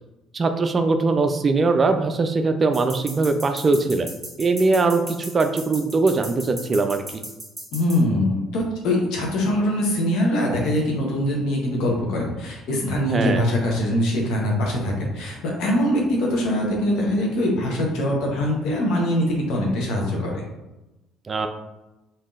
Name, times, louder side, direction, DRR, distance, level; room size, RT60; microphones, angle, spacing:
voice 1, 0.3-4.1 4.4-7.2 13.1-13.5 21.3-21.5, right 3 dB, 35° right, 7 dB, 0.3 m, -21 dB
sound 1, 2.7-8.0, right 1 dB, 20° right, 1.4 m, -37 dB
voice 2, 7.7-20.4, left 1 dB, 65° left, -1 dB, 0.8 m, -23 dB
3.5 x 2.7 x 2.4 m, 1.0 s
hypercardioid pair, 50°, 0 cm